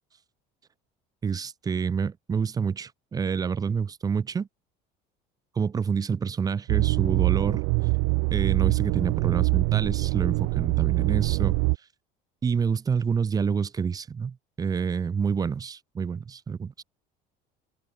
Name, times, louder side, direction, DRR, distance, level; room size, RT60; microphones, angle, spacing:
voice 1, 1.2-4.5 5.5-7.6 8.3-11.6 12.4-16.8, right 6 dB, 20° right, 1.1 m, -28 dB
sound 1, 6.7-11.8, right 40 dB or more, 85° right, 0.4 m, -24 dB
open air
cardioid pair, 160°, 19 cm